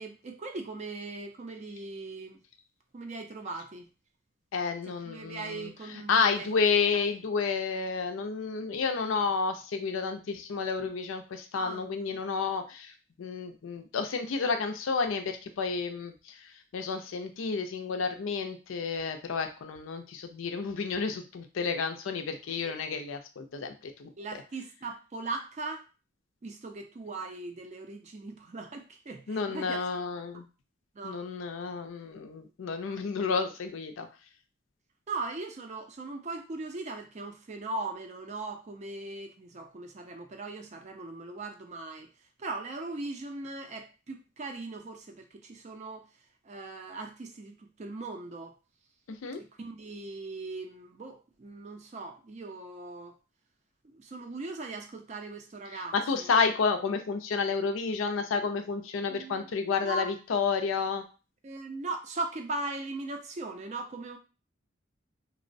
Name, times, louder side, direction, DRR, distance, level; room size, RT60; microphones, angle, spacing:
voice 1, 0.0-2.4 2.9-3.9 5.0-6.6 6.9-7.0 11.5-11.8 22.6-22.8 24.2-25.8 26.4-29.8 30.9-31.2 32.8-33.0 35.1-42.1 42.4-46.0 46.4-48.5 49.4-53.1 53.9-56.3 59.1-59.5 59.8-60.1 61.4-64.2, right 3 dB, 35° right, 4 dB, 0.4 m, -39 dB
voice 2, 4.5-24.1 29.3-30.4 31.0-34.1 49.1-49.4 55.7-61.0, left 5 dB, 85° left, 6 dB, 0.4 m, -31 dB
2.9 x 2.0 x 2.5 m, 0.33 s
head